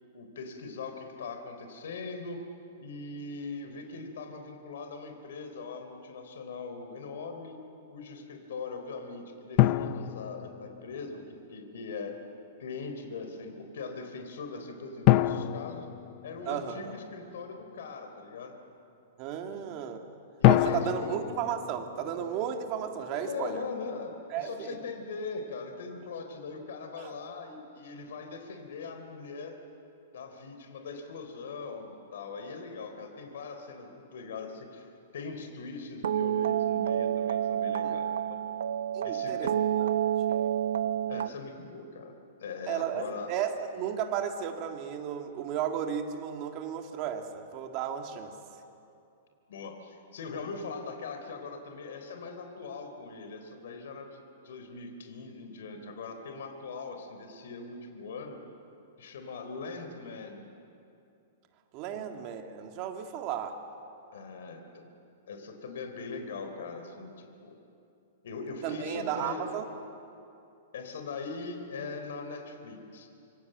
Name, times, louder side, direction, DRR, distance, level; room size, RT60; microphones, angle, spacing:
voice 1, 0.1-2.4 2.8-7.6 7.9-12.2 12.6-15.9 16.2-18.5 19.5-19.6 20.4-21.2 23.1-24.1 24.4-29.5 30.1-34.9 35.1-38.4 39.0-39.5 41.0-42.1 42.4-43.3 49.5-54.2 54.4-58.4 59.0-60.4 61.9-62.0 64.1-64.9 65.3-67.6 68.2-69.5 70.7-73.1, left 4 dB, 70° left, 5 dB, 3.8 m, -41 dB
sound 1, 9.6-11.2 15.1-16.9 20.4-22.7, left 15 dB, 30° left, 0.5 m, -26 dB
voice 2, 16.5-16.9 19.2-20.1 20.4-23.6 24.3-24.8 27.0-27.1 37.8-38.0 38.9-39.5 39.8-39.9 40.3-40.5 42.7-48.3 61.7-63.6 68.6-69.6, right 9 dB, 30° right, 4 dB, 2.1 m, -34 dB
sound 2, 36.0-41.3, right 10 dB, 80° right, 0.7 m, -29 dB
26.5 x 24.5 x 7.9 m, 2.6 s
hypercardioid pair, 170°, 0 cm